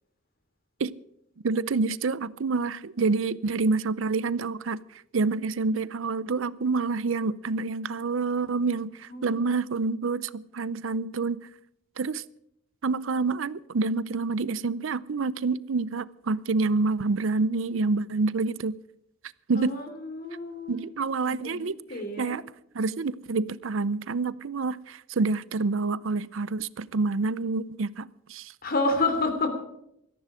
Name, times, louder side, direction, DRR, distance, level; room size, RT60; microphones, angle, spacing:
voice 1, 1.4-4.8 5.1-11.5 12.0-12.2 12.8-18.8 19.5-19.7 20.7-21.8 22.2-22.4 22.7-28.5, right 4 dB, 75° right, 0.6 m, -27 dB
voice 2, 19.5-20.8 21.2-22.4 28.6-29.5, left 3 dB, 50° left, 3.1 m, -29 dB
18.0 x 14.0 x 5.0 m
head